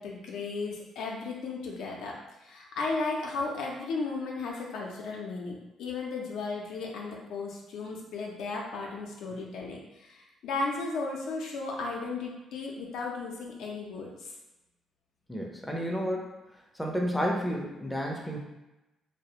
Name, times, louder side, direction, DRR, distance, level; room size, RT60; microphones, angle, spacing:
voice 1, 0.0-14.3, left 3 dB, 80° left, -1 dB, 0.4 m, -35 dB
voice 2, 4.9-5.3 15.3-16.4 16.7-18.4, equal, 5° left, -1 dB, 0.5 m, -31 dB
2.4 x 2.1 x 2.8 m, 1.0 s
cardioid pair, 90°, 0 cm